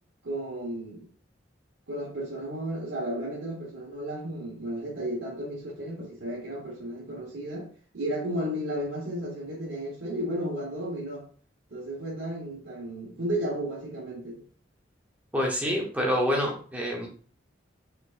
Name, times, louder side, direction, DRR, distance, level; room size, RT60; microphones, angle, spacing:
voice 1, 0.2-1.1 1.9-7.7 7.9-11.2 11.7-14.4, right 1 dB, 75° right, -5 dB, 1.2 m, -33 dB
voice 2, 15.3-17.1, equal, 10° right, -1 dB, 1.0 m, -27 dB
4.5 x 4.4 x 2.5 m, 0.43 s
head